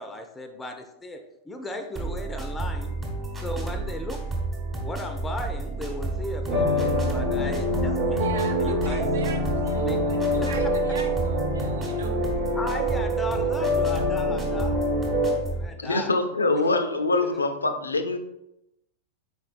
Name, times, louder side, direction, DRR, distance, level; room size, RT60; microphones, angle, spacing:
voice 1, 0.0-2.9 3.4-4.2 4.8-8.3 8.6-9.1 9.7-10.7 12.5-14.8 15.5-16.1 17.3-17.4, left 1 dB, 10° left, 5 dB, 0.4 m, -36 dB
sound 1, 2.0-15.7, right 2 dB, 20° right, 1.1 m, -31 dB
sound 2, 6.5-15.4, equal, 50° right, 0.9 m, -25 dB
voice 2, 8.2-12.5, right 4 dB, 65° right, 5 dB, 0.6 m, -41 dB
voice 3, 15.8-18.2, left 3 dB, 80° left, 7 dB, 0.4 m, -24 dB
4.2 x 3.8 x 2.4 m, 0.86 s
figure-of-eight pair, 90°, 0 cm